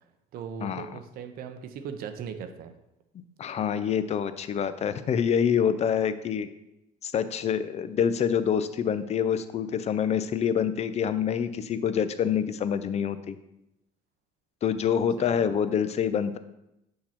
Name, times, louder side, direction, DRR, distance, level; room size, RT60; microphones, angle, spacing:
voice 1, 0.3-2.7 15.2-15.6, right 7 dB, 60° right, 8 dB, 0.7 m, -39 dB
voice 2, 3.4-6.5 7.0-13.4 14.6-16.4, left 8 dB, 40° left, 12 dB, 0.5 m, -26 dB
6.4 x 2.9 x 5.7 m, 0.87 s
supercardioid pair, 80°, 17 cm